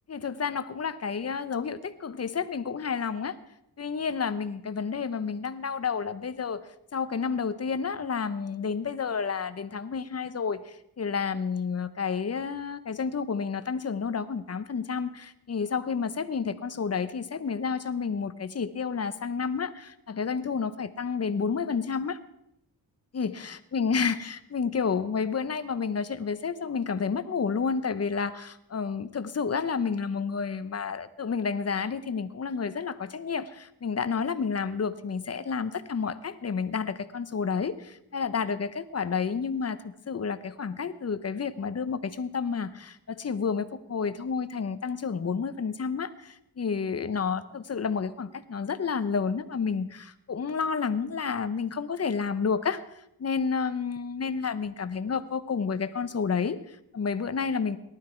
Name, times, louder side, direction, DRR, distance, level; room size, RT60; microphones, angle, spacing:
voice 1, 0.1-3.4 3.8-6.6 6.9-22.2 23.1-52.8 53.2-57.8, left 5 dB, 40° left, 12 dB, 1.0 m, -30 dB
18.5 x 12.0 x 4.6 m, 0.80 s
cardioid pair, 90°, 39 cm